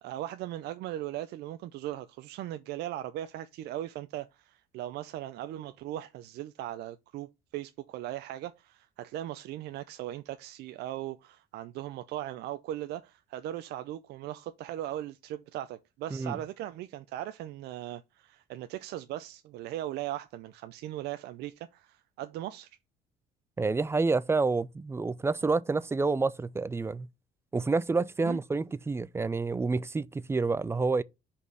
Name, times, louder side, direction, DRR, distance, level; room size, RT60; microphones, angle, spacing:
voice 1, 0.0-22.7 28.2-28.4, right 13 dB, 75° right, 0.5 m, -38 dB
voice 2, 16.1-16.4 23.6-27.1 27.5-31.0, right 3 dB, 15° right, 0.4 m, -28 dB
5.2 x 4.3 x 6.0 m
cardioid pair, 110°, 17 cm